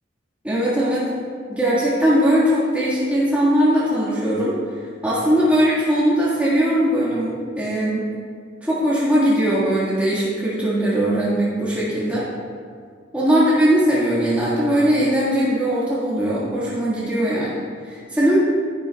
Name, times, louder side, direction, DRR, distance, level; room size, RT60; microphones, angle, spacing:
voice 1, 0.4-1.1 1.5-4.6 5.0-8.1 8.6-12.2 13.1-18.4, equal, 10° right, -10 dB, 1.8 m, -20 dB
11.0 x 10.0 x 2.4 m, 2.1 s
head